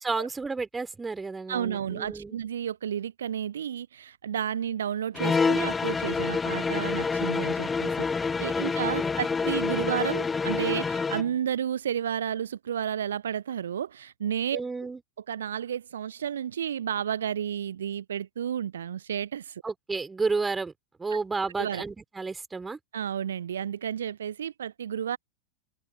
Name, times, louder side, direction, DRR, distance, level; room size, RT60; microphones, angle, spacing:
voice 1, 0.0-2.4 8.5-8.7 9.0-9.1 9.4-9.9 14.5-15.0 19.6-20.7 21.0-22.8, right 4 dB, 10° right, 4.1 m, -32 dB
voice 2, 1.5-8.1 8.4-14.6 15.3-19.6 21.6-21.8 22.9-25.2, right 9 dB, 65° right, 0.7 m, -31 dB
sound 1, 5.1-11.3, left 5 dB, 15° left, 0.8 m, -27 dB
figure-of-eight pair, 90°, 0 cm